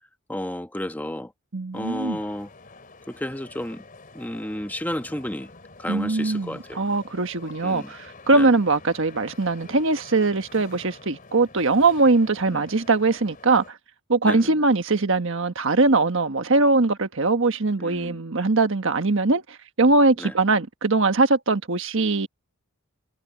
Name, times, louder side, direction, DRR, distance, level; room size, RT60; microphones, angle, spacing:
voice 1, 0.3-1.3 1.7-2.5 3.1-3.8 4.1-5.5 5.8-6.8 7.6-7.9 8.3-8.5 12.5-12.6 14.2-14.6 17.8-18.2 20.2-20.3, left 1 dB, 10° left, 1.4 m, -32 dB
voice 2, 1.5-2.2 5.9-13.8 14.1-22.3, right 3 dB, 60° right, 1.4 m, -21 dB
sound 1, 1.7-13.7, left 3 dB, 40° left, 3.5 m, -47 dB
head